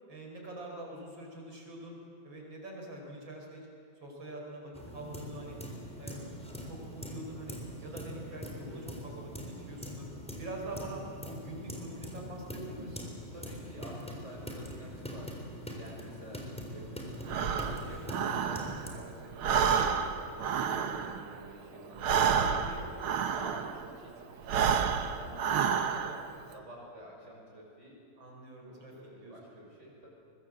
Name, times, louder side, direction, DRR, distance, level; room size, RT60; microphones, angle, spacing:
voice 1, 0.1-2.0 2.2-3.7 4.0-5.6 6.0-6.3 6.6-9.3 9.6-10.1 10.3-13.2 20.5-20.9 22.4-22.9 28.2-28.9 29.2-29.6, right 2 dB, 65° right, 0 dB, 5.6 m, -44 dB
sound 1, 4.7-18.9, equal, 5° left, 3.8 m, -43 dB
voice 2, 13.3-15.4 15.8-17.0 17.4-22.5 23.2-26.2 26.5-28.0 28.7-30.1, equal, 35° right, -2 dB, 6.5 m, -50 dB
Breathing, 17.3-19.0 19.3-23.9 24.4-26.3, right 7 dB, 85° right, 2.0 m, -30 dB
23.5 x 22.0 x 7.8 m, 2.4 s
omnidirectional pair, 2.2 m